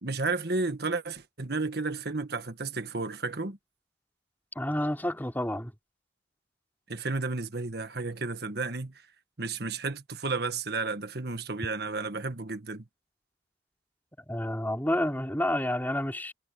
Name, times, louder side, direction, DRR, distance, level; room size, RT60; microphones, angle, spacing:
voice 1, 0.0-3.6 6.9-8.9 9.4-12.8, right 3 dB, 60° right, 1.6 m, -32 dB
voice 2, 4.6-5.7 14.3-16.3, left 1 dB, 10° left, 4.3 m, -29 dB
head